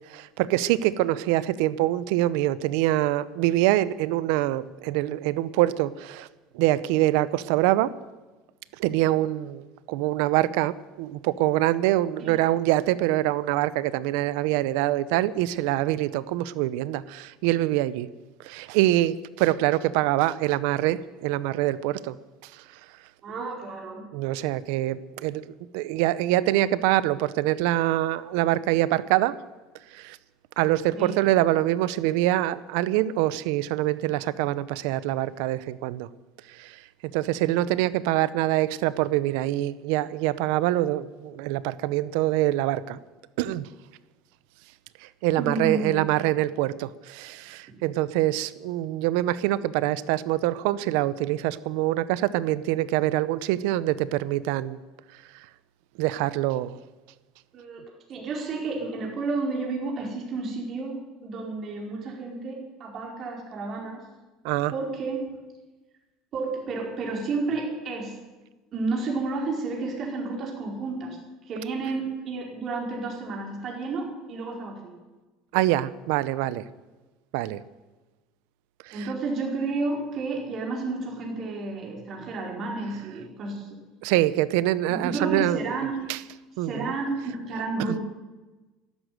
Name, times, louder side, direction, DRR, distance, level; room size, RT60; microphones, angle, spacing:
voice 1, 0.1-6.3 6.5-7.9 8.8-18.1 18.4-22.2 24.1-29.3 29.9-30.2 30.6-36.1 36.5-36.8 37.1-43.0 43.4-43.7 45.2-54.8 56.0-56.8 64.4-64.7 75.5-76.7 77.3-77.6 78.9-79.0 84.0-85.6 86.1-86.2 86.6-86.9 87.9-88.0, right 15 dB, 80° right, 17 dB, 0.7 m, -25 dB
voice 2, 23.2-24.0 30.9-31.1 45.4-46.0 57.5-57.8 58.1-64.0 64.7-65.2 66.3-68.1 68.7-71.2 71.4-74.9 78.9-83.8 84.9-86.1 86.6-88.0, right 3 dB, 45° right, 0 dB, 4.5 m, -31 dB
12.5 x 11.5 x 9.3 m, 1.2 s
supercardioid pair, 125°, 0 cm